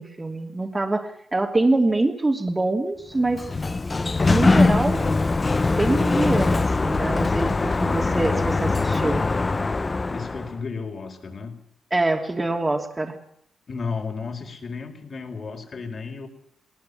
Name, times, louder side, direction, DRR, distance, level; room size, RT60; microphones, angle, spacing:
voice 1, 0.0-3.4 4.3-5.0 5.7-9.2 11.9-13.2, right 2 dB, 25° right, 3 dB, 2.8 m, -24 dB
Sliding door, 3.2-10.6, left 3 dB, 30° left, 0.9 m, -22 dB
voice 2, 10.1-11.6 13.7-16.3, left 5 dB, 50° left, 4 dB, 4.6 m, -33 dB
20.0 x 19.5 x 8.4 m, 0.68 s
cardioid pair, 70°, 0 cm